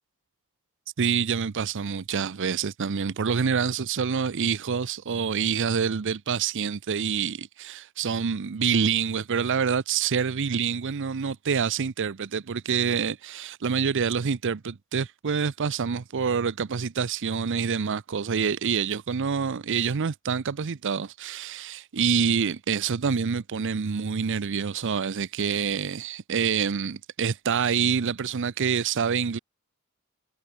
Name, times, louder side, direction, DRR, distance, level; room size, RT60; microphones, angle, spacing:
voice 1, 1.0-29.4, right 6 dB, 55° right, 0.6 m, -27 dB
head